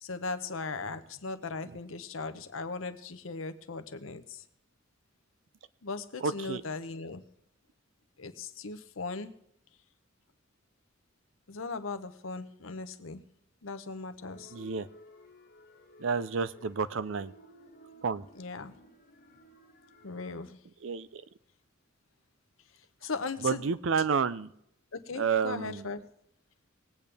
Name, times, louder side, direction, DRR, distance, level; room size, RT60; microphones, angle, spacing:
voice 1, 0.0-4.4 5.8-7.2 8.2-9.3 11.5-13.2 13.6-14.5 18.3-18.8 20.0-20.6 23.0-23.7 24.9-26.0, left 4 dB, 85° left, 10 dB, 0.9 m, -38 dB
voice 2, 6.2-6.6 14.5-14.9 16.0-17.3 18.0-18.3 20.8-21.2 23.4-24.5 25.2-25.9, right 5 dB, 70° right, 15 dB, 0.5 m, -30 dB
sound 1, 14.2-20.4, left 1 dB, 50° left, 1.7 m, -55 dB
20.5 x 8.6 x 3.4 m, 0.75 s
head